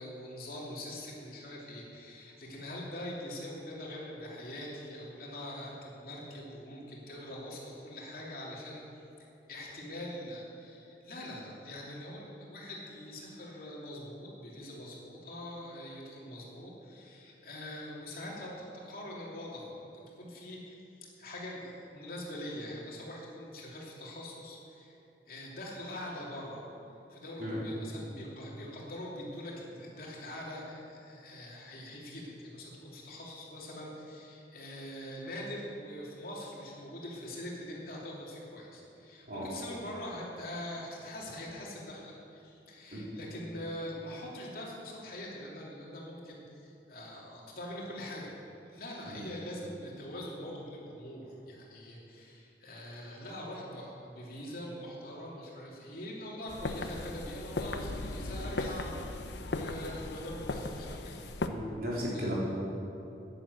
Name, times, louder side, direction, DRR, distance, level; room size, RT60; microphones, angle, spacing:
voice 1, 0.0-8.8 9.2-25.0 25.3-26.6 27.1-48.3 48.6-61.2 62.1-62.3, left 1 dB, 55° left, -4 dB, 3.0 m, -43 dB
sound 1, 56.5-61.5, left 2 dB, 80° left, 0.8 m, -37 dB
voice 2, 61.5-62.4, equal, 55° right, -6 dB, 4.0 m, -36 dB
11.0 x 10.5 x 7.9 m, 2.9 s
head